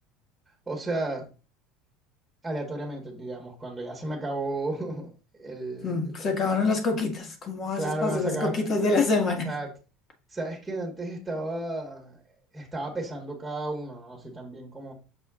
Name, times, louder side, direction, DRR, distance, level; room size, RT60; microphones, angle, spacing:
voice 1, 0.7-1.3 2.4-5.1 5.4-6.0 7.8-8.6 9.4-9.7 10.3-14.9, right 2 dB, 10° right, 1.7 m, -33 dB
voice 2, 5.8-9.5, left 3 dB, 40° left, 1.8 m, -26 dB
6.7 x 4.2 x 3.7 m
supercardioid pair, 105°, 0 cm